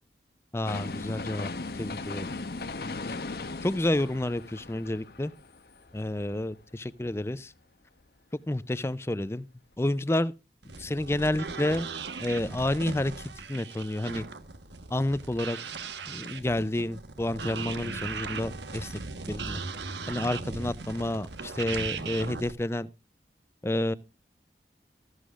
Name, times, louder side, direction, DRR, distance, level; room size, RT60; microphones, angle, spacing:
voice 1, 0.5-1.5 1.8-2.3 3.1-3.2 3.6-5.3 5.9-7.5 8.5-9.5 9.8-10.3 10.8-11.9 12.2-13.1 13.5-14.2 14.9-15.6 16.1-19.0 19.3-19.6 20.1-22.9 23.6-23.9, left 1 dB, 15° left, 0.5 m, -29 dB
sound 1, 0.7-6.7 7.1-7.2, left 3 dB, 60° left, 0.9 m, -38 dB
sound 2, 10.6-22.5, right 4 dB, 85° right, 1.2 m, -38 dB
14.0 x 11.5 x 2.4 m
head